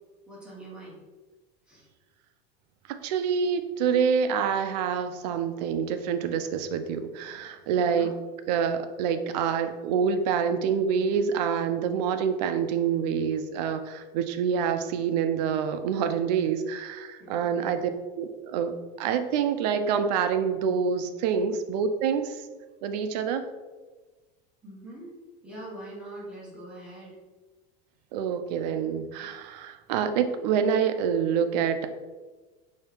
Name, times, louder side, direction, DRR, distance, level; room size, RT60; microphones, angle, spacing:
voice 1, 0.3-1.0 1.7-1.9 7.8-8.1 17.2-17.6 24.6-25.1 25.4-27.2, right 1 dB, 5° right, -7 dB, 1.0 m, -43 dB
voice 2, 3.0-8.1 8.5-17.8 18.2-22.4 22.8-23.4 28.1-31.9, right 7 dB, 80° right, 9 dB, 0.5 m, -26 dB
4.3 x 2.8 x 3.4 m, 1.3 s
cardioid pair, 175°, 21 cm